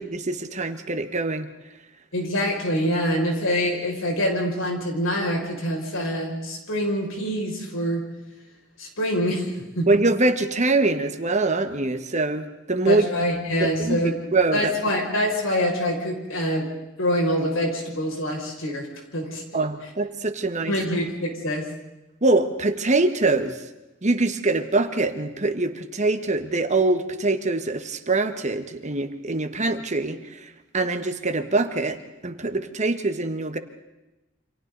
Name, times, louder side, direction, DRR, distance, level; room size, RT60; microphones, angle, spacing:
voice 1, 0.1-1.5 9.9-13.1 13.6-14.0 14.3-14.6 19.5-20.7 22.2-23.6 24.0-33.6, right 3 dB, 35° right, 8 dB, 1.5 m, -23 dB
voice 2, 2.1-8.0 8.8-9.9 12.9-14.1 14.5-16.7 17.0-18.9 19.1-19.6 20.7-21.6, equal, 85° left, 1 dB, 6.4 m, -25 dB
29.0 x 26.5 x 4.1 m, 1.0 s
head